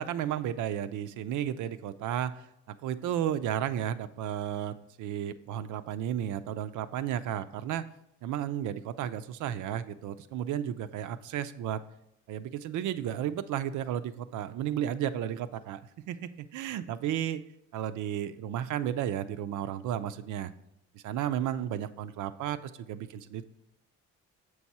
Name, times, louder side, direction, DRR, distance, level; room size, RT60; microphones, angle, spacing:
voice 1, 0.0-7.9 8.2-11.8 12.3-15.8 16.1-17.4 17.7-20.5 20.9-23.4, right 10 dB, 80° right, 11 dB, 0.5 m, -33 dB
7.0 x 4.7 x 4.2 m, 0.82 s
cardioid pair, 90°, 30 cm